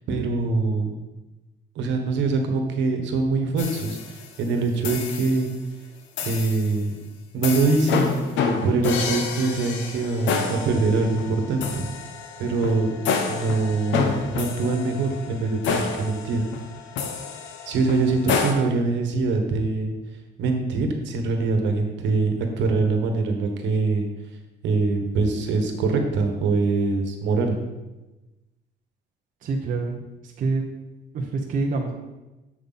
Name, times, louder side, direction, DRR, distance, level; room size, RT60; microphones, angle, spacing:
voice 1, 0.1-1.0 1.7-5.5 6.2-6.9 7.3-8.1 8.6-11.9 12.4-12.9 13.3-16.4 17.7-19.9 20.4-24.1 24.6-27.6, right 3 dB, 75° right, 4 dB, 1.4 m, -23 dB
sound 1, 3.6-4.4 4.8-5.5 6.2-6.7 7.4-18.5, left 5 dB, 85° left, 1.0 m, -29 dB
voice 2, 29.4-30.7 31.1-31.9, right 3 dB, 45° right, 1 dB, 0.8 m, -27 dB
7.8 x 7.0 x 4.1 m, 1.1 s
cardioid pair, 165°, 19 cm